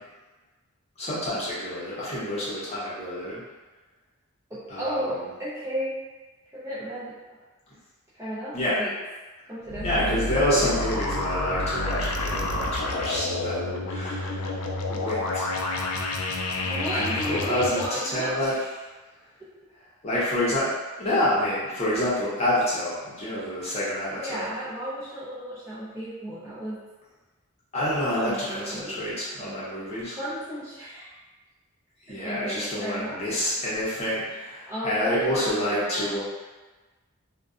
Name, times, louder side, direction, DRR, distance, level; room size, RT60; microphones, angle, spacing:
voice 1, 1.0-3.4 4.7-5.1 8.5-8.8 9.8-14.5 14.9-15.7 17.0-18.5 20.0-20.7 21.0-24.5 27.7-30.2 32.1-36.2, left 1 dB, 30° left, -9 dB, 0.7 m, -28 dB
voice 2, 4.5-6.0 6.5-7.2 8.1-9.0 9.4-9.9 10.6-10.7 16.7-18.7 19.4-19.5 24.1-26.9 28.2-28.9 30.1-31.1 32.1-33.2 34.7-36.2, equal, 15° right, -11 dB, 0.4 m, -34 dB
sound 1, 9.7-17.9, left 2 dB, 80° left, 0.3 m, -29 dB
2.5 x 2.2 x 2.4 m, 1.2 s
head